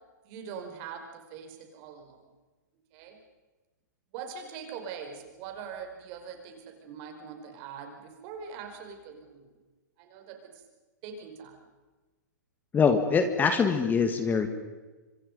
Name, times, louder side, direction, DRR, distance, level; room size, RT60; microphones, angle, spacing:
voice 1, 0.2-2.2 2.9-3.2 4.1-9.5 10.0-10.5 11.0-11.6, right 6 dB, 45° right, 4 dB, 5.2 m, -42 dB
voice 2, 12.7-14.5, left 5 dB, 20° left, 8 dB, 1.9 m, -23 dB
26.0 x 25.5 x 5.4 m, 1.2 s
hypercardioid pair, 120°, 10 cm